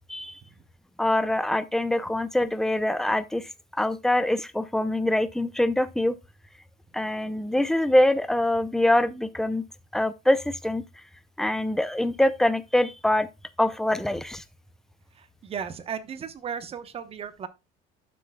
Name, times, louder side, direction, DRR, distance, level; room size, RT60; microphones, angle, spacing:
voice 1, 0.1-0.4 1.0-6.1 6.9-9.6 9.9-10.8 11.4-13.3 13.6-14.4, left 1 dB, ahead, 0.5 m, -24 dB
voice 2, 15.2-17.5, right 7 dB, 30° right, 1.0 m, -35 dB
12.0 x 6.1 x 2.3 m
cardioid pair, 130°, 20 cm